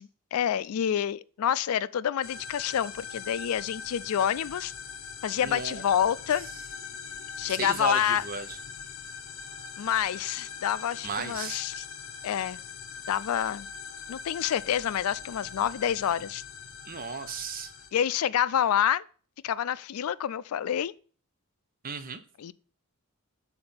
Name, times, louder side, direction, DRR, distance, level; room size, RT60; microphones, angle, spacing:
voice 1, 0.0-4.7 5.2-6.5 7.4-8.2 9.8-11.8 12.2-12.6 13.1-13.7 14.1-16.4 17.9-19.0 19.4-20.9 22.4-22.5, left 9 dB, 80° left, 0.4 m, -28 dB
sound 1, 2.2-17.9, left 6 dB, 65° left, 1.0 m, -42 dB
voice 2, 5.4-5.8 7.5-8.6 11.0-11.6 16.9-17.7 21.8-22.2, right 5 dB, 40° right, 0.8 m, -35 dB
7.0 x 4.3 x 5.6 m
head